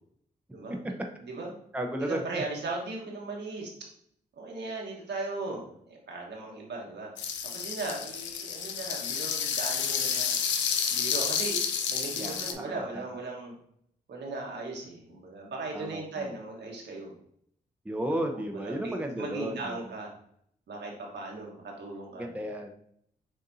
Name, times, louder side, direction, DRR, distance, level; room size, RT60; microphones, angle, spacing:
voice 1, 0.5-0.9 1.2-1.5 2.0-3.7 4.4-7.1 7.5-10.4 10.9-11.6 11.9-13.5 14.1-17.1 18.3-20.1 20.7-22.3, right 3 dB, 70° right, -1 dB, 1.3 m, -37 dB
voice 2, 1.7-2.4 12.2-13.0 15.7-16.3 17.8-19.8 22.2-22.8, right 1 dB, 10° right, 3 dB, 0.7 m, -34 dB
sound 1, 7.2-12.5, left 7 dB, 90° left, 0.5 m, -30 dB
6.7 x 2.5 x 2.7 m, 0.68 s
supercardioid pair, 50°, 19 cm